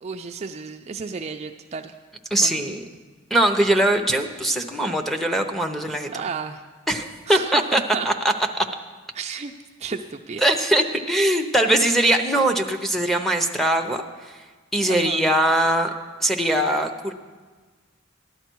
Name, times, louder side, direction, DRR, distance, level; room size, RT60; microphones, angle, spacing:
voice 1, 0.0-1.9 2.4-2.7 6.1-6.6 7.3-8.1 9.1-9.5 9.8-10.4 14.9-15.2, right 5 dB, 35° right, 4 dB, 0.4 m, -32 dB
voice 2, 2.3-2.8 3.3-6.1 6.9-8.1 8.5-8.6 10.4-14.3 14.7-15.9 16.2-17.1, right 1 dB, ahead, 3 dB, 0.7 m, -21 dB
14.5 x 11.5 x 4.6 m, 1.4 s
head